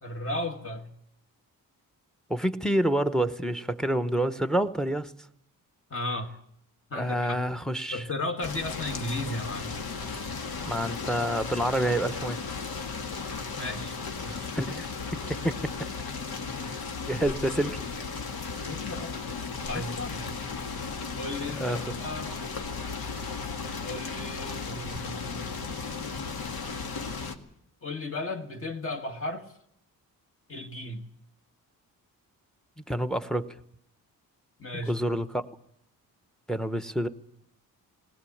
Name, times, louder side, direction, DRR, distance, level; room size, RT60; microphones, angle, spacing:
voice 1, 0.0-0.9 5.9-6.4 6.9-7.4 7.9-9.8 13.6-14.0 14.2-14.5 18.7-19.2 19.7-20.4 21.2-22.4 23.8-26.0 27.8-29.5 30.5-31.1 34.6-35.0, left 2 dB, 35° left, 5 dB, 1.9 m, -35 dB
voice 2, 2.3-5.1 6.9-8.1 10.6-12.4 14.5-14.9 15.1-15.7 17.1-17.9 21.6-21.8 32.9-33.5 34.7-35.4 36.5-37.1, right 1 dB, ahead, 12 dB, 0.9 m, -28 dB
sound 1, 8.4-27.3, left 4 dB, 85° left, 2.1 m, -35 dB
19.5 x 19.0 x 8.6 m, 0.74 s
wide cardioid pair, 140°, 36 cm